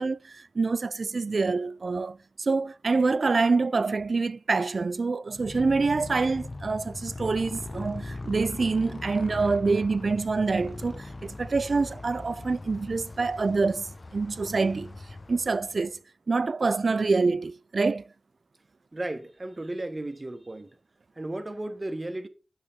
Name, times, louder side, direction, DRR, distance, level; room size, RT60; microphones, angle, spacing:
voice 1, 0.0-15.0 15.3-16.0 16.3-18.1, right 4 dB, 65° right, 0.3 m, -26 dB
Motorcycle, 5.3-16.0, left 2 dB, 45° left, 0.7 m, -40 dB
voice 2, 18.9-20.7 21.2-22.3, right 1 dB, 35° right, 1.2 m, -34 dB
8.6 x 6.3 x 3.5 m
cardioid pair, 40°, 0 cm